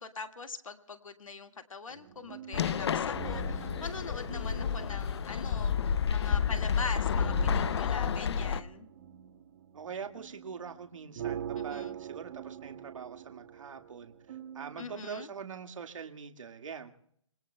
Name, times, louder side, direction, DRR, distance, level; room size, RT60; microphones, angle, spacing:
voice 1, 0.0-8.9 11.6-12.0 14.8-15.3, left 4 dB, 90° left, 6 dB, 1.9 m, -42 dB
sound 1, 1.9-15.1, right 8 dB, 50° right, 1.9 m, -44 dB
sound 2, 2.5-8.6, left 7 dB, 55° left, 0.6 m, -30 dB
voice 2, 9.7-16.9, right 6 dB, 75° right, 5 dB, 1.9 m, -43 dB
28.0 x 22.0 x 2.2 m, 0.68 s
hypercardioid pair, 155°, 17 cm